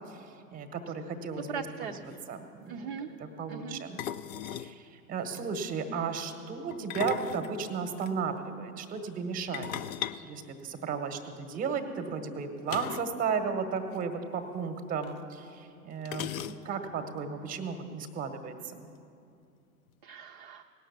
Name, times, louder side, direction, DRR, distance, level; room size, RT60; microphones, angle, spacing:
voice 1, 0.1-1.6 2.3-4.0 4.5-9.7 10.2-18.9, right 5 dB, 15° right, 7 dB, 0.9 m, -35 dB
voice 2, 1.5-2.3 2.7-3.1 3.5-3.8 20.0-20.6, right 6 dB, 35° right, 3 dB, 0.5 m, -40 dB
sound 1, 1.7-1.8 1.9-2.2 4.0-4.8 6.7-8.1 9.5-11.2 12.7-13.2 13.4-13.5 13.9-14.0 15.0-15.1 16.1-16.9, left 10 dB, 60° left, 0.6 m, -38 dB
17.5 x 6.4 x 7.9 m, 2.5 s
figure-of-eight pair, 100°, 48 cm